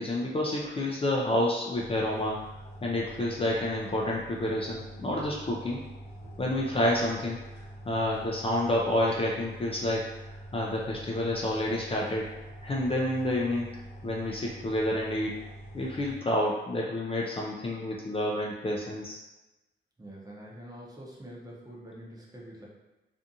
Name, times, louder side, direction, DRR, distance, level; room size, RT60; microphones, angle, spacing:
voice 1, 0.0-2.4 2.8-5.8 6.4-7.4 7.9-10.1 10.5-12.3 12.6-13.7 14.0-15.3 15.7-19.2, left 1 dB, 30° left, -3 dB, 0.4 m, -29 dB
sound 1, 1.7-16.2, right 1 dB, 55° right, 1.2 m, -45 dB
voice 2, 20.0-22.7, right 1 dB, 20° right, -4 dB, 0.7 m, -45 dB
2.5 x 2.4 x 2.7 m, 1.0 s
cardioid pair, 80°, 20 cm